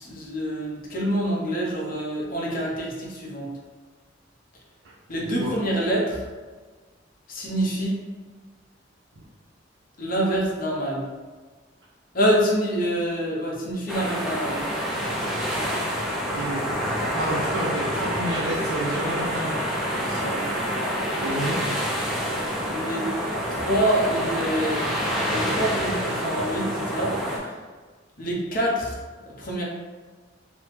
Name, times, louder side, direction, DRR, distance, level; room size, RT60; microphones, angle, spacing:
voice 1, 0.0-3.5 5.1-6.2 7.3-8.0 10.0-11.1 12.1-14.6 20.0-20.4 22.6-23.1 23.5-24.9 25.2-27.5 28.2-29.0 29.4-29.6, equal, 45° left, -3 dB, 0.6 m, -26 dB
sound 1, 13.9-27.4, equal, ahead, 0.4 m, -27 dB
voice 2, 16.3-16.7 17.1-19.6 21.2-21.7, right 1 dB, 85° right, -5 dB, 0.5 m, -29 dB
3.1 x 2.0 x 3.2 m, 1.4 s
head